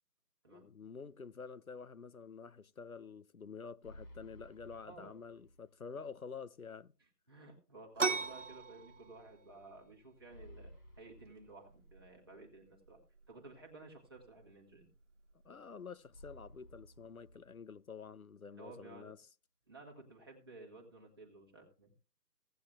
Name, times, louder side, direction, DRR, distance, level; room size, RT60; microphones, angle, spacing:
voice 1, 0.5-6.9 15.4-19.2, left 5 dB, 60° left, 0.7 m, -49 dB
sound 1, 3.8-5.9 6.2-6.3 10.3-12.3 16.1-18.1, equal, 90° left, 4.0 m, -57 dB
voice 2, 4.8-5.1 7.3-10.7 11.0-13.0 13.3-14.9 18.6-19.1 19.7-21.9, right 2 dB, 15° right, 1.6 m, -54 dB
sound 2, 8.0-17.4, right 4 dB, 50° right, 0.9 m, -44 dB
17.0 x 9.3 x 2.4 m
figure-of-eight pair, 175°, 49 cm